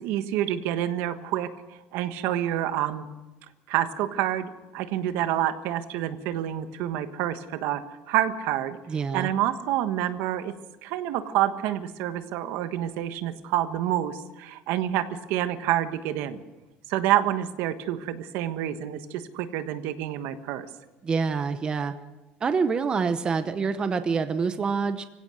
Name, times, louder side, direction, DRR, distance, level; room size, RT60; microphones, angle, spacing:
voice 1, 0.0-3.1 3.7-8.8 9.1-10.5 10.8-16.4 16.9-20.7, right 12 dB, 70° right, 10 dB, 1.4 m, -28 dB
voice 2, 8.9-9.3 21.0-21.9 22.4-25.0, right 5 dB, 20° right, 10 dB, 0.9 m, -26 dB
24.0 x 16.5 x 6.5 m, 1.1 s
cardioid pair, 160°, 4 cm